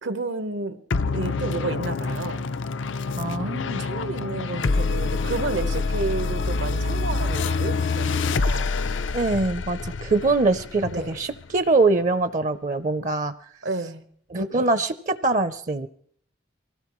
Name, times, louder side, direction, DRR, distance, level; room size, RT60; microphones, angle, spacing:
voice 1, 0.0-2.5 3.8-8.7 10.9-11.1 13.6-14.0, right 3 dB, 85° right, 10 dB, 1.1 m, -31 dB
sound 1, 0.9-11.7, left 4 dB, 90° left, 0.5 m, -26 dB
voice 2, 3.1-3.8 9.1-13.3 14.3-15.9, right 3 dB, 40° right, 11 dB, 0.5 m, -23 dB
23.5 x 16.5 x 3.1 m, 0.65 s
head